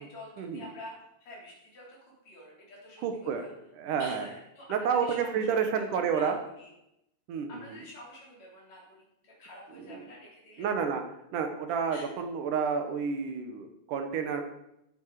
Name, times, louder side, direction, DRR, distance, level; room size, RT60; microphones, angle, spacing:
voice 1, 0.0-3.5 4.0-6.7 7.5-10.7 11.9-12.1, left 1 dB, 60° left, -3 dB, 5.1 m, -48 dB
voice 2, 3.0-3.5 3.7-4.3 4.7-6.4 7.3-7.8 9.7-10.0 10.6-11.0 11.3-14.4, right 6 dB, 80° right, 6 dB, 3.0 m, -30 dB
16.0 x 9.1 x 4.9 m, 0.84 s
omnidirectional pair, 3.6 m